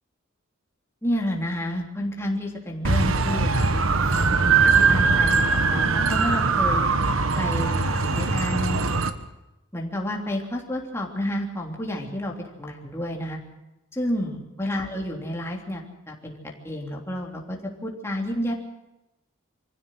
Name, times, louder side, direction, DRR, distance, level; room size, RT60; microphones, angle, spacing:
voice 1, 1.0-3.7 4.2-6.8 7.4-8.8 9.7-12.3 12.6-13.4 13.9-18.5, equal, 15° left, -1 dB, 3.2 m, -30 dB
sound 1, 2.8-9.1, right 4 dB, 85° right, 1.4 m, -21 dB
25.0 x 15.5 x 7.7 m, 0.97 s
head